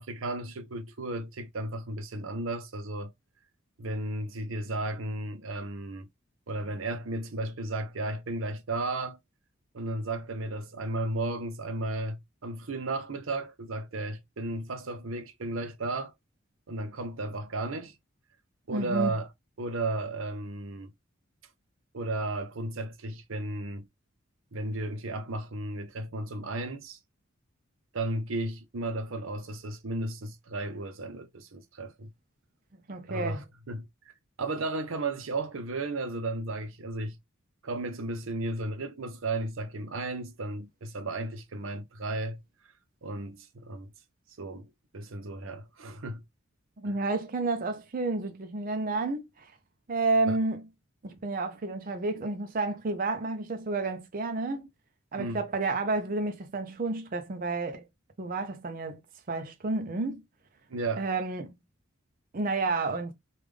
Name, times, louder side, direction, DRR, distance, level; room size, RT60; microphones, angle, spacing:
voice 1, 0.0-3.1 3.8-6.1 6.5-9.2 9.7-16.1 16.7-17.9 18.7-19.3 19.6-20.9 21.9-23.9 24.5-27.0 27.9-32.1 33.1-33.8 34.4-37.2 37.6-42.4 43.0-43.9 44.4-46.2 46.8-47.0 50.3-50.4 55.2-55.4 60.7-61.1, right 2 dB, 80° right, 0.7 m, -34 dB
voice 2, 18.7-19.1 32.9-33.4 46.8-49.5 49.9-50.6 51.0-54.6 55.1-57.8 58.2-59.0 59.3-60.2 61.0-61.5 62.3-63.1, right 3 dB, 45° right, 0.5 m, -30 dB
3.5 x 2.4 x 3.2 m
head